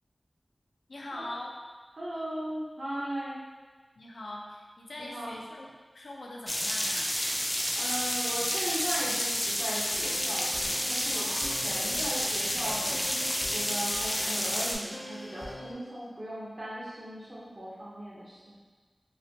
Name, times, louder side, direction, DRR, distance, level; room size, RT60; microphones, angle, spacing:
voice 1, 0.9-1.5 4.0-7.1 11.0-11.5, left 1 dB, 85° left, -2 dB, 0.4 m, -42 dB
voice 2, 2.0-3.4 5.0-5.4 7.8-12.9 13.5-18.6, equal, 60° right, -8 dB, 0.7 m, -38 dB
sound 1, 6.5-14.8, equal, 15° left, 0.4 m, -30 dB
sound 2, 9.7-15.7, equal, 50° left, 0.7 m, -44 dB
3.0 x 2.1 x 2.7 m, 1.4 s
wide cardioid pair, 50°, 0 cm